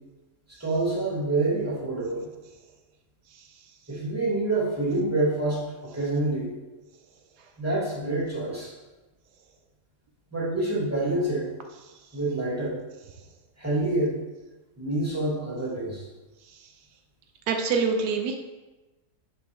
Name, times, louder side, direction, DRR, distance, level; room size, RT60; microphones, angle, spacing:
voice 1, 0.6-2.3 3.9-6.5 7.6-8.7 10.3-11.5 12.1-12.8 13.6-14.1 14.8-16.0, right 2 dB, 10° right, -7 dB, 2.5 m, -27 dB
voice 2, 17.5-18.4, right 5 dB, 90° right, 4 dB, 1.3 m, -25 dB
10.5 x 4.2 x 3.5 m, 1.1 s
omnidirectional pair, 1.7 m